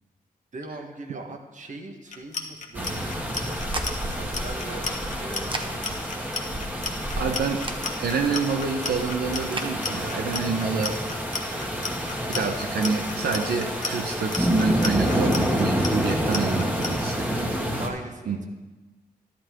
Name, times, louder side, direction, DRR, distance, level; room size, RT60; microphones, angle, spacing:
voice 1, 0.5-4.8 5.2-5.9 17.8-18.5, right 2 dB, 50° right, 4 dB, 1.4 m, -40 dB
Clock, 2.1-16.9, left 4 dB, 50° left, 1.3 m, -33 dB
sound 1, 2.7-17.9, equal, 10° right, 1.5 m, -28 dB
sound 2, 3.2-9.7, right 2 dB, 30° right, 1.0 m, -40 dB
voice 2, 7.2-7.6 8.0-11.0 11.5-11.6 12.3-17.8 18.3-18.4, right 5 dB, 85° right, 3 dB, 0.9 m, -27 dB
12.5 x 11.0 x 3.8 m, 1.2 s
cardioid pair, 85°, 16 cm